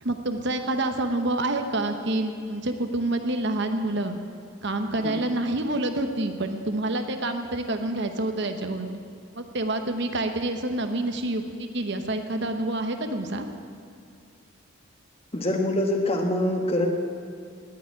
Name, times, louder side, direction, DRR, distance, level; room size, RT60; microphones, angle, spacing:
voice 1, 0.0-4.2 4.6-9.0 9.4-13.5, right 2 dB, 55° right, 6 dB, 1.0 m, -27 dB
voice 2, 15.3-16.9, left 1 dB, 30° left, 3 dB, 1.5 m, -24 dB
18.5 x 7.1 x 9.4 m, 2.3 s
head